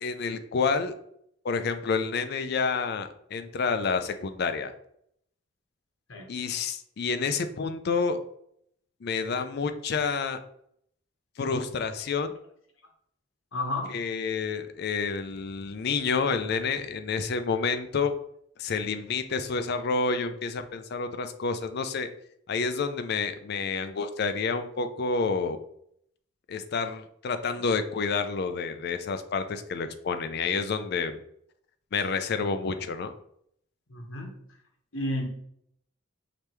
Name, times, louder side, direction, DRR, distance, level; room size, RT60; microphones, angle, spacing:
voice 1, 0.0-0.9 1.4-4.7 6.3-8.2 9.0-10.4 11.4-12.3 13.9-18.1 18.6-22.1 22.5-25.6 26.5-31.2 31.9-33.1, left 5 dB, 50° left, 9 dB, 0.4 m, -29 dB
voice 2, 13.5-13.9 27.4-27.6 33.9-34.3 34.9-35.3, left 1 dB, 70° left, 1 dB, 1.2 m, -32 dB
5.0 x 3.3 x 3.0 m, 0.71 s
head